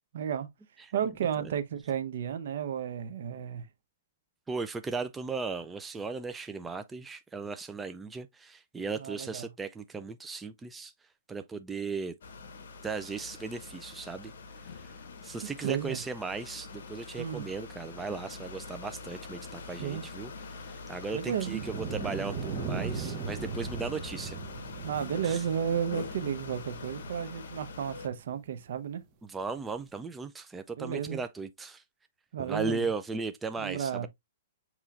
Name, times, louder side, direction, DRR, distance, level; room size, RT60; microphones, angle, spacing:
voice 1, 0.1-0.5 0.9-3.7 9.0-9.5 15.4-16.0 17.2-17.4 19.8-20.0 21.1-21.6 24.8-29.0 30.8-31.2 32.3-32.8 33.6-34.1, right 8 dB, 65° right, 0.8 m, -33 dB
voice 2, 4.5-10.9 11.3-12.1 12.8-14.3 14.6-14.9 15.2-24.4 25.2-25.4 29.2-31.8 32.4-34.1, right 4 dB, 10° right, 0.3 m, -37 dB
sound 1, 12.2-28.1, left 4 dB, 70° left, 0.8 m, -44 dB
sound 2, 21.2-27.6 28.2-28.3 29.8-29.9, right 5 dB, 30° right, 0.8 m, -38 dB
6.9 x 3.0 x 2.4 m
hypercardioid pair, 140°, 0 cm